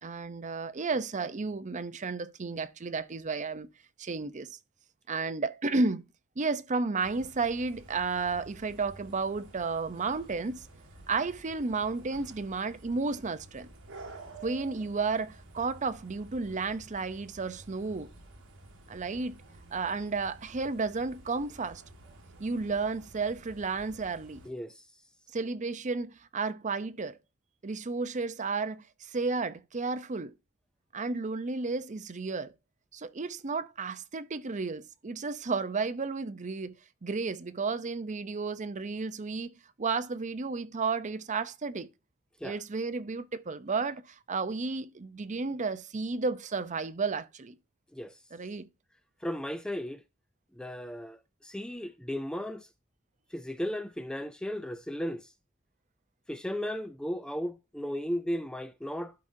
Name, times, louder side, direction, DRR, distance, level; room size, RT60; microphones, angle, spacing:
voice 1, 0.0-3.7 4.0-4.6 5.1-6.0 6.4-10.7 11.1-13.7 14.4-18.1 18.9-19.4 19.7-21.8 22.4-24.4 25.3-27.2 27.6-30.3 30.9-32.5 32.9-36.8 37.0-39.5 39.8-41.9 42.4-47.5 48.3-48.7, right 4 dB, 35° right, 0.6 m, -32 dB
sound 1, 7.0-24.5, right 2 dB, 60° right, 1.9 m, -51 dB
voice 2, 24.4-24.9 42.4-42.6 47.9-48.2 49.2-50.0 50.5-52.7 53.3-55.3 56.3-59.1, equal, 5° left, 0.3 m, -35 dB
12.5 x 5.0 x 2.7 m
head